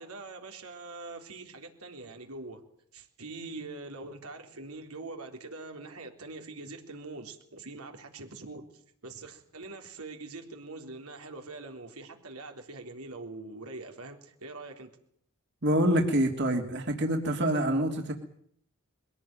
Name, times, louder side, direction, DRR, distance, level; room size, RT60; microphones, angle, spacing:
voice 1, 0.0-2.6 2.9-8.6 9.0-14.9, right 3 dB, 90° right, 3.8 m, -43 dB
voice 2, 15.6-18.1, right 1 dB, 55° right, 2.9 m, -26 dB
23.0 x 17.5 x 9.1 m
head